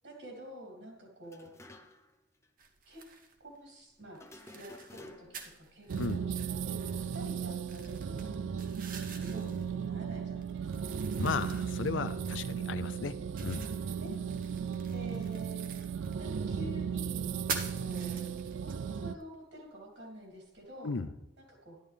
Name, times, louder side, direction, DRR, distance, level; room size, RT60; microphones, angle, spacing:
voice 1, 0.0-1.5 2.9-3.1 3.4-8.4 9.1-10.9 14.0-14.2 14.9-15.6 16.2-17.3 17.7-20.9 21.4-21.8, equal, 75° right, -1 dB, 3.1 m, -48 dB
sound 1, 1.2-2.2 2.4-2.5 4.2-5.5, left 1 dB, 15° left, 0.6 m, -52 dB
sound 2, 2.6-21.0, right 5 dB, 50° right, 1.0 m, -47 dB
sound 3, 5.9-19.1, right 7 dB, 90° right, 0.4 m, -36 dB
voice 2, 11.2-13.1 13.4-13.6 20.8-21.1, left 5 dB, 85° left, 14 dB, 0.5 m, -34 dB
11.0 x 11.0 x 3.4 m, 0.95 s
head